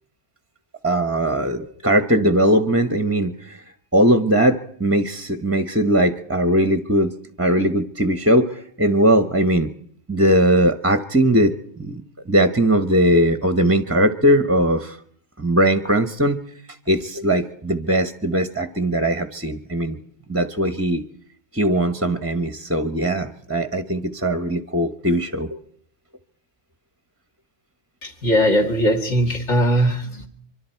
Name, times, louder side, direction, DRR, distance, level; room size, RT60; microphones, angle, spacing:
voice 1, 0.8-3.6 3.9-9.7 10.1-11.5 11.8-15.0 15.4-16.4 16.9-20.0 20.3-21.0 21.5-25.6, right 1 dB, 15° right, 10 dB, 0.8 m, -19 dB
voice 2, 28.0-30.3, equal, 70° left, 2 dB, 2.7 m, -19 dB
24.5 x 24.5 x 4.5 m, 0.62 s
omnidirectional pair, 1.3 m